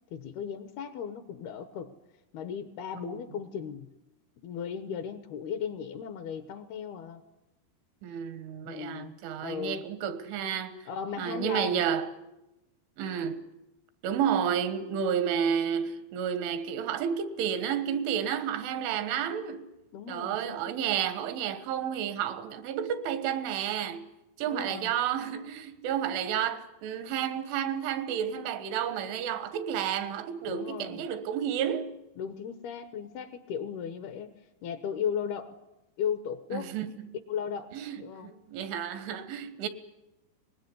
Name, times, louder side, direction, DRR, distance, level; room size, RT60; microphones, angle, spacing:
voice 1, 0.1-1.9 2.3-3.9 4.4-7.2 8.7-9.8 10.9-11.8 19.9-20.8 24.5-24.9 30.4-31.1 32.2-34.3 34.6-35.6 36.0-36.7 37.3-37.7 38.0-38.3, left 7 dB, 70° left, 2.6 m, -36 dB
voice 2, 8.0-10.9 11.2-12.1 13.0-13.5 14.0-19.7 20.1-24.1 24.4-32.0 36.5-37.1 37.7-39.7, right 8 dB, 90° right, 3.9 m, -31 dB
24.0 x 20.0 x 9.9 m
omnidirectional pair, 5.3 m